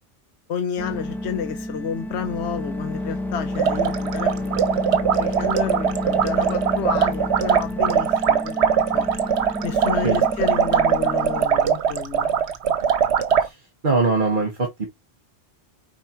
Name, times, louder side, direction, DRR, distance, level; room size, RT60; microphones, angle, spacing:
voice 1, 0.5-4.6 5.1-9.1 9.6-12.3, left 7 dB, 75° left, 1.0 m, -31 dB
sound 1, 0.8-11.5, left 1 dB, ahead, 1.1 m, -30 dB
sound 2, 3.5-13.5, right 7 dB, 75° right, 1.1 m, -21 dB
voice 2, 13.8-14.9, right 3 dB, 45° right, 1.5 m, -21 dB
4.8 x 4.5 x 4.5 m
omnidirectional pair, 1.1 m